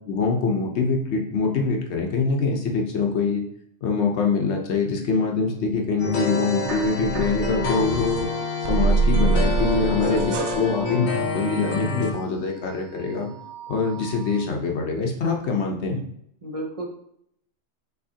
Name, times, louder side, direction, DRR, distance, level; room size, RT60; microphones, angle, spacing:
voice 1, 0.1-3.4 3.8-8.3 8.7-13.3 13.7-16.0, left 4 dB, 60° left, 2 dB, 0.9 m, -24 dB
sound 1, 6.0-12.1, left 4 dB, 85° left, 1.3 m, -28 dB
sound 2, 6.6-8.3 8.6-12.6 13.0-14.5, right 4 dB, 70° right, 0.8 m, -27 dB
voice 2, 10.0-10.6 16.4-16.9, equal, 40° right, 0 dB, 0.5 m, -32 dB
5.6 x 3.0 x 2.7 m, 0.71 s
omnidirectional pair, 1.3 m